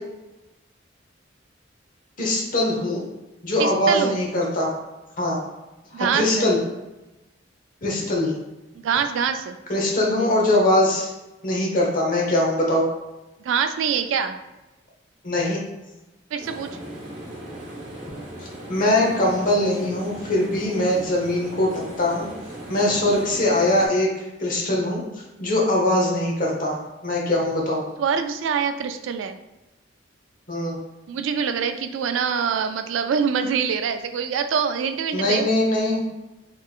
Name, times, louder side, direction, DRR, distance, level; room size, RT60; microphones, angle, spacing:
voice 1, 2.2-3.0 3.4-4.8 5.2-5.4 5.9-6.6 7.8-8.3 9.7-11.1 11.4-12.8 15.2-15.6 18.7-22.3 22.7-24.1 24.4-25.0 25.4-27.8 30.5-30.8 35.1-36.0, left 1 dB, 45° left, -2 dB, 0.9 m, -22 dB
voice 2, 3.6-4.2 5.9-6.5 8.8-9.6 13.4-14.4 16.3-16.7 22.9-23.0 28.0-29.4 31.1-35.5, right 6 dB, 90° right, 8 dB, 0.3 m, -25 dB
sound 1, 16.4-23.9, right 1 dB, 40° right, 1.0 m, -38 dB
3.6 x 3.2 x 2.4 m, 1.0 s
head